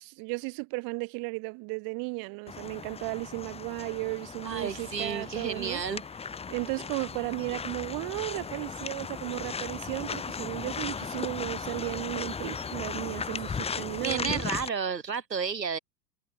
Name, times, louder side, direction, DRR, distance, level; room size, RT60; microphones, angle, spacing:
voice 1, 0.0-5.8 6.5-14.4, right 31 dB, 45° right, 4.2 m, -35 dB
sound 1, 2.5-14.7, left 5 dB, 10° left, 1.3 m, -37 dB
voice 2, 4.4-6.0 13.9-15.8, right 6 dB, 85° right, 7.8 m, -32 dB
hypercardioid pair, 100°, 48 cm